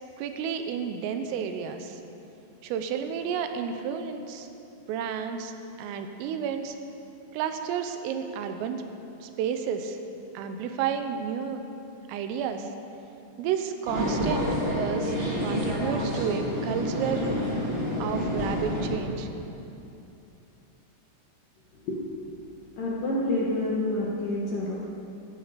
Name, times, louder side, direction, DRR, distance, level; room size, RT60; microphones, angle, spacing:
voice 1, 0.2-2.0 2.6-4.5 4.9-5.5 5.8-6.8 7.3-8.8 9.2-10.0 10.4-11.7 12.1-12.7 13.4-17.3 18.0-19.3, right 7 dB, 85° right, 7 dB, 3.5 m, -31 dB
sound 1, 13.8-19.0, equal, 65° right, 0.6 m, -28 dB
voice 2, 22.8-24.7, left 1 dB, 60° left, -5 dB, 2.3 m, -28 dB
16.0 x 15.5 x 5.1 m, 2.8 s
omnidirectional pair, 5.9 m